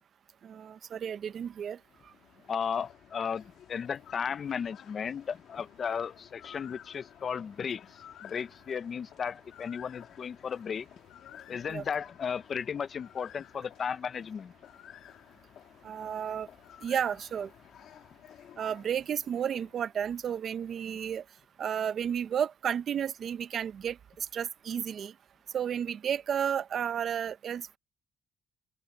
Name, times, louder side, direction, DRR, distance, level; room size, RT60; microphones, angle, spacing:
voice 1, 0.4-2.1 11.7-11.8 15.8-16.5 16.8-17.5 18.6-21.2 21.6-25.1 25.5-27.8, right 8 dB, 60° right, 0.7 m, -32 dB
sound 1, 1.6-20.0, left 10 dB, 75° left, 1.6 m, -54 dB
voice 2, 2.5-10.9 11.5-14.5, left 7 dB, 50° left, 0.7 m, -35 dB
open air
cardioid pair, 90°, 0 cm